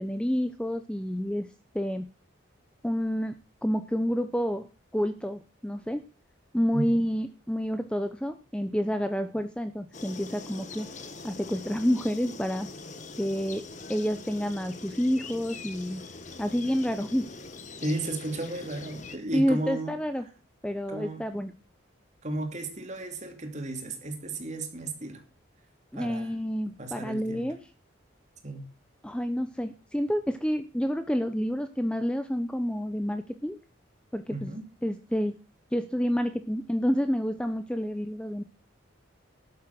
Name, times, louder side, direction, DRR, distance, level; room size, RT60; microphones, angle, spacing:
voice 1, 0.0-1.5 1.7-2.1 2.8-3.3 3.6-4.7 4.9-6.0 6.5-10.9 11.2-12.7 13.2-16.0 16.4-17.3 19.3-20.3 20.6-21.5 25.9-27.6 29.0-33.6 34.1-34.6 34.8-35.3 35.7-38.4, equal, 5° left, 0.6 m, -29 dB
voice 2, 6.7-7.0 17.8-19.9 20.9-21.2 22.2-25.2 25.9-26.3 26.8-27.5 28.4-28.7 34.3-34.7, right 2 dB, 35° right, 2.7 m, -34 dB
sound 1, 9.9-19.2, left 3 dB, 35° left, 1.4 m, -43 dB
12.5 x 8.3 x 6.0 m
head